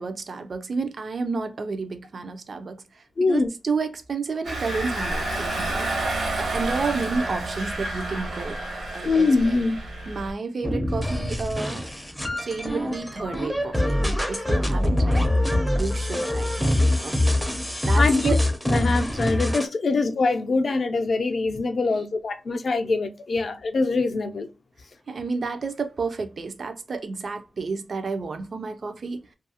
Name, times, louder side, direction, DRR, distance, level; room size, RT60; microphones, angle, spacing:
voice 1, 0.0-8.6 8.9-9.6 10.1-11.8 12.3-15.3 15.8-17.4 17.8-18.4 21.9-22.0 25.1-29.3, right 4 dB, 50° right, 0.4 m, -31 dB
voice 2, 3.2-3.5 9.0-9.8 18.0-18.4 18.7-24.5, left 3 dB, 50° left, 0.5 m, -23 dB
Engine, 4.4-10.3, right 2 dB, 80° right, 0.9 m, -29 dB
sound 1, 10.6-19.7, left 1 dB, 5° left, 0.5 m, -24 dB
2.7 x 2.3 x 2.7 m
wide cardioid pair, 150°, 0 cm